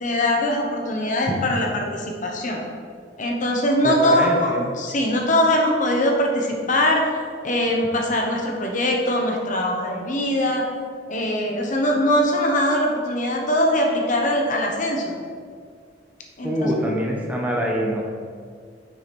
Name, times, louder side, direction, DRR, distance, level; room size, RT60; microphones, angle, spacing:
voice 1, 0.0-2.6 3.2-7.1 7.4-10.7 11.1-15.1 16.4-16.7, left 1 dB, 45° left, 0 dB, 0.9 m, -22 dB
voice 2, 3.8-4.6 16.4-18.0, equal, 10° right, -2 dB, 0.7 m, -24 dB
6.4 x 4.6 x 4.3 m, 2.1 s
head